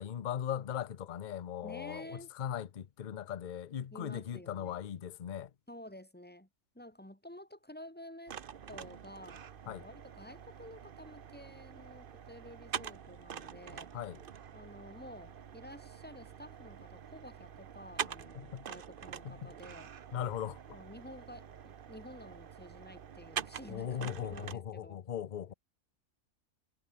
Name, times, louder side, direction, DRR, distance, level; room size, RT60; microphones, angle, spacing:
voice 1, 0.0-5.5 9.7-9.9 13.9-14.2 18.3-18.7 19.2-19.5 20.1-20.6 23.7-25.5, left 9 dB, 45° left, 0.7 m, -39 dB
voice 2, 1.6-2.3 3.9-4.8 5.7-6.5 6.7-8.4 8.7-13.9 14.5-19.9 20.7-25.0, left 1 dB, 5° left, 3.2 m, -51 dB
sound 1, 8.3-24.5, right 8 dB, 45° right, 0.8 m, -45 dB
omnidirectional pair, 1.5 m